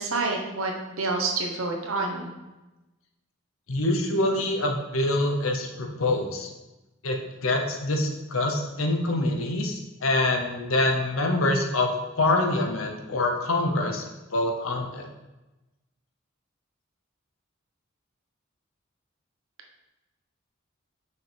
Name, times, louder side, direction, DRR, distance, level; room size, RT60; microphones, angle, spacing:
voice 1, 0.0-2.3, right 3 dB, 85° right, 2 dB, 1.1 m, -28 dB
voice 2, 3.7-6.5 7.0-14.0 14.3-15.1, left 2 dB, 85° left, 3 dB, 1.0 m, -25 dB
6.3 x 5.6 x 3.5 m, 1.1 s
head